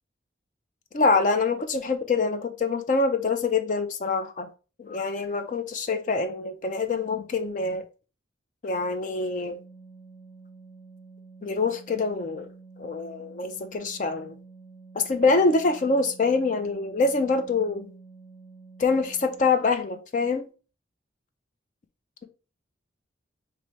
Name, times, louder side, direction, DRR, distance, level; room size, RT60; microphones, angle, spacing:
voice 1, 0.9-4.5 4.8-7.8 8.6-9.6 11.4-12.5 12.8-14.3 14.9-17.9 18.8-20.5, left 3 dB, 40° left, 0.4 m, -25 dB
Organ, 9.2-19.7, right 4 dB, 60° left, 1.4 m, -49 dB
4.2 x 2.6 x 3.1 m
head